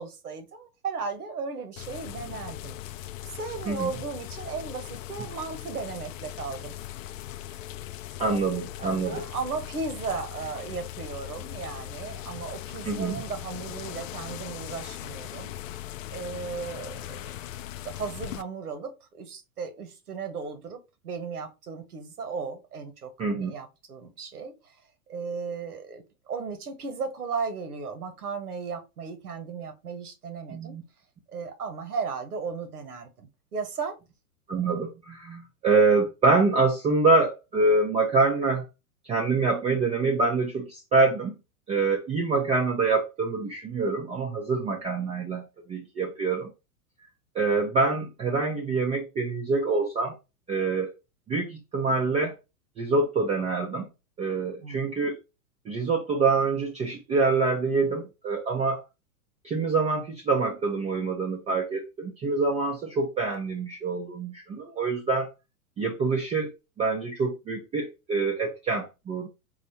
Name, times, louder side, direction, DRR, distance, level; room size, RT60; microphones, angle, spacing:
voice 1, 0.0-2.8 3.3-6.7 8.8-15.5 16.1-17.3 17.8-24.7 25.1-30.8 31.3-34.0 54.6-54.8, right 5 dB, 90° right, 1.1 m, -36 dB
sound 1, 1.8-18.4, left 13 dB, 60° left, 0.5 m, -39 dB
voice 2, 8.2-9.3 12.8-13.2 23.2-23.6 30.5-30.8 34.5-38.7 39.0-41.3 41.7-46.5 47.3-50.1 50.5-50.9 51.3-52.4 52.8-53.9 54.2-55.2 55.7-58.8 59.4-65.3 65.8-66.5 66.8-69.3, right 3 dB, 15° right, 0.5 m, -25 dB
4.1 x 2.4 x 4.2 m
hypercardioid pair, 115°, 44 cm